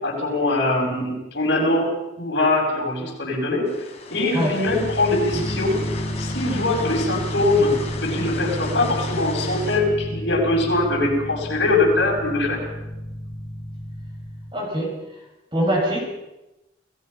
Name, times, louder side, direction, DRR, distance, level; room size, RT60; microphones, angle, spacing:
voice 1, 0.0-1.9 2.2-3.7 4.1-5.8 6.2-12.6, left 2 dB, 65° left, 0 dB, 7.3 m, -22 dB
sound 1, 3.6-9.8, left 4 dB, 35° left, 3.8 m, -37 dB
sound 2, 4.7-14.5, equal, ahead, 3.5 m, -31 dB
voice 2, 14.5-15.0 15.5-16.0, equal, 25° right, 0 dB, 6.5 m, -23 dB
29.0 x 18.0 x 5.8 m, 0.95 s
head